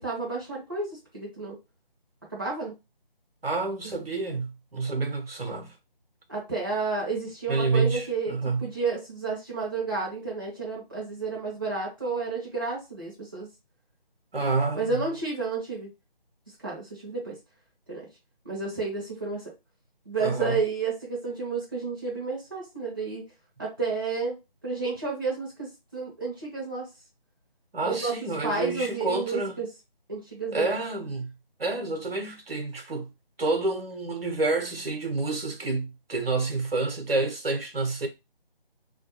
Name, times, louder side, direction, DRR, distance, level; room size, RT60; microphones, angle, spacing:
voice 1, 0.0-1.6 2.3-2.8 3.8-3.9 6.3-8.3 8.6-13.5 14.7-15.9 16.6-17.4 17.9-18.0 18.4-19.4 20.1-23.2 23.6-24.4 24.6-26.9 27.8-28.1 28.4-29.7 30.1-30.7, right 4 dB, 25° right, 0.6 m, -31 dB
voice 2, 3.4-5.7 7.5-8.7 14.3-15.0 20.2-20.6 27.7-29.6 30.5-31.3 31.6-33.1 33.4-38.1, right 3 dB, 80° right, 0.8 m, -28 dB
2.3 x 2.2 x 2.7 m
figure-of-eight pair, 160°, 29 cm